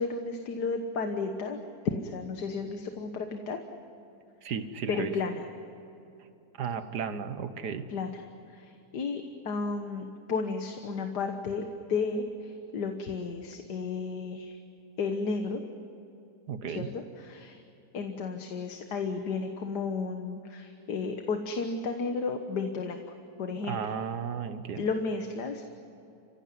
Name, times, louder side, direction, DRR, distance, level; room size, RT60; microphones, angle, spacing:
voice 1, 0.0-1.6 1.9-3.6 4.9-5.4 7.9-8.2 8.5-14.6 15.0-15.6 16.7-17.6 17.9-23.0 23.4-23.9 24.8-25.7, left 4 dB, 80° left, 6 dB, 1.9 m, -33 dB
voice 2, 4.4-5.1 6.6-7.9 16.5-16.9 23.6-24.9, right 6 dB, 80° right, 10 dB, 1.8 m, -34 dB
30.0 x 16.5 x 9.6 m, 2.9 s
omnidirectional pair, 1.7 m